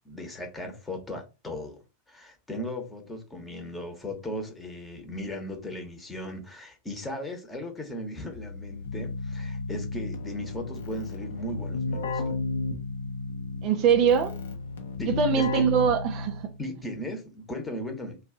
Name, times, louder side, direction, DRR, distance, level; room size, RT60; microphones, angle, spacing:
voice 1, 0.0-1.8 2.1-12.2 15.0-15.6 16.6-18.2, left 1 dB, 10° left, 0.9 m, -37 dB
Keyboard (musical), 8.3-16.6, left 3 dB, 60° left, 0.7 m, -33 dB
voice 2, 13.6-14.3 15.0-16.5, right 7 dB, 40° right, 0.4 m, -23 dB
2.6 x 2.3 x 3.7 m
figure-of-eight pair, 90°, 0 cm